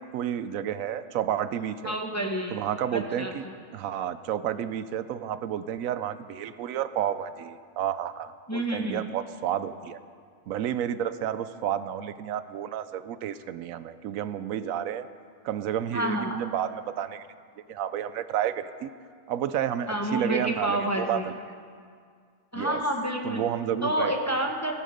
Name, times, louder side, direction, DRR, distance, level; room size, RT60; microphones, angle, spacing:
voice 1, 0.0-2.0 2.5-3.4 3.7-10.0 10.5-15.1 15.4-17.2 17.7-18.9 19.3-21.2 22.5-22.8 23.2-24.1, right 10 dB, 80° right, 13 dB, 1.0 m, -31 dB
voice 2, 1.8-3.5 8.5-9.1 15.9-16.4 19.9-21.3 22.5-23.4 23.8-24.8, right 1 dB, 15° left, 1 dB, 1.0 m, -29 dB
17.5 x 12.0 x 5.1 m, 2.1 s
omnidirectional pair, 1.4 m